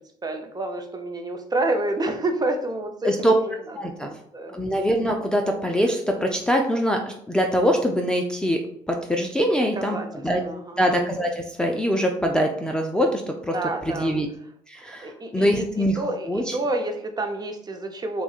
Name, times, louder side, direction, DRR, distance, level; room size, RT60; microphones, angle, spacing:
voice 1, 0.2-3.4 3.7-4.6 9.8-10.1 10.4-10.8 13.5-14.2 15.0-18.2, right 2 dB, 25° right, 4 dB, 0.8 m, -29 dB
voice 2, 3.0-3.3 3.7-4.1 4.5-8.6 8.9-10.4 10.8-13.5 13.9-14.3 14.7-16.6, equal, 5° left, 0 dB, 0.5 m, -23 dB
6.8 x 2.3 x 2.4 m, 0.68 s
supercardioid pair, 70°, 15 cm